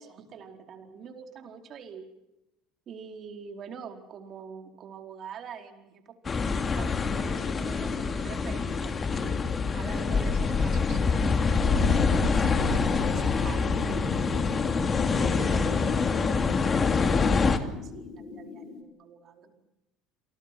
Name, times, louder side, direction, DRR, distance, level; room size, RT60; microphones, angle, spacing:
voice 1, 0.0-2.1 2.9-14.4 15.0-19.5, right 6 dB, 50° right, 5 dB, 4.6 m, -45 dB
sound 1, 6.2-17.6, left 4 dB, 30° left, 2.7 m, -26 dB
sound 2, 11.6-18.8, left 5 dB, 60° left, 5.8 m, -34 dB
28.5 x 24.0 x 6.2 m, 0.90 s
hypercardioid pair, 80°, 0 cm